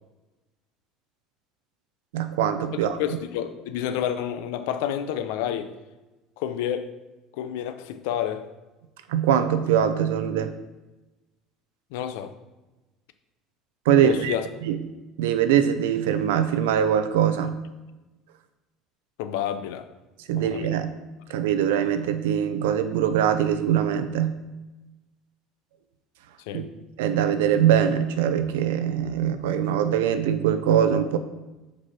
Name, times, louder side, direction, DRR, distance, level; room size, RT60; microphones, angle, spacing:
voice 1, 2.1-3.0 9.1-10.5 13.9-14.3 14.6-14.8 15.2-17.6 20.3-20.9 21.3-24.4 26.5-26.6 27.0-31.2, right 9 dB, 80° right, 0.5 m, -22 dB
voice 2, 3.0-5.7 6.4-7.0 7.4-8.5 11.9-12.3 14.0-14.5 19.2-19.9 20.4-20.8 26.5-26.7, left 10 dB, 75° left, 0.5 m, -29 dB
5.3 x 4.1 x 5.7 m
hypercardioid pair, 75°, 0 cm